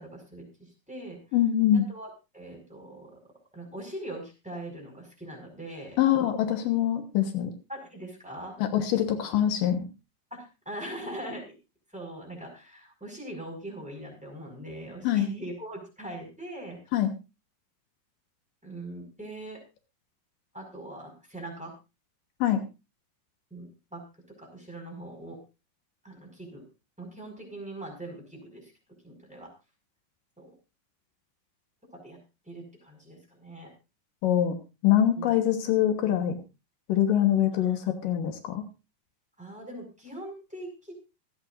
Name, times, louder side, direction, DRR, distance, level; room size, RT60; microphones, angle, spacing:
voice 1, 0.0-1.2 1.9-3.2 3.5-6.0 7.7-8.6 10.3-11.5 11.9-16.8 18.6-19.6 20.5-21.7 23.5-24.0 24.4-25.4 26.0-26.6 27.0-28.7 29.0-29.5 30.4-30.5 31.9-32.2 32.4-33.7 35.2-35.3 37.8-37.9 39.4-40.9, right 1 dB, ahead, 0 dB, 4.8 m, -41 dB
voice 2, 1.3-1.9 6.0-7.5 8.6-9.9 15.0-15.3 16.9-17.1 22.4-22.6 34.2-34.5 34.8-36.4 36.9-38.6, left 11 dB, 85° left, 6 dB, 2.9 m, -24 dB
26.5 x 8.9 x 2.6 m, 0.29 s
omnidirectional pair, 3.8 m